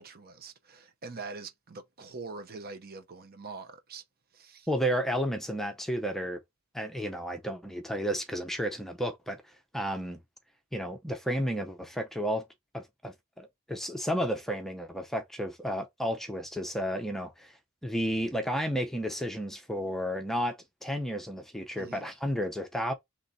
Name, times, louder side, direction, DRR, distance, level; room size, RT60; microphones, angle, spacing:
voice 1, 0.0-4.0 4.3-4.7 21.8-22.1, right 4 dB, 45° right, 0.8 m, -44 dB
voice 2, 4.7-6.4 6.7-9.4 9.7-10.2 10.7-12.4 12.7-17.5 17.8-22.9, equal, ahead, 0.6 m, -32 dB
3.9 x 3.1 x 4.0 m
head